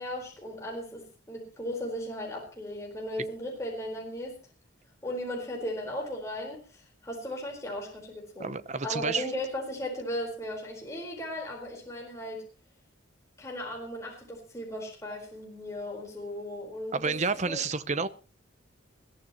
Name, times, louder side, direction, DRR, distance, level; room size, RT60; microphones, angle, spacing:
voice 1, 0.0-4.3 5.0-8.5 8.8-12.4 13.4-17.2 17.4-17.6, equal, 15° left, 4.4 m, -36 dB
voice 2, 8.4-9.3 16.9-18.1, right 4 dB, 35° right, 0.8 m, -30 dB
21.5 x 15.0 x 3.0 m
head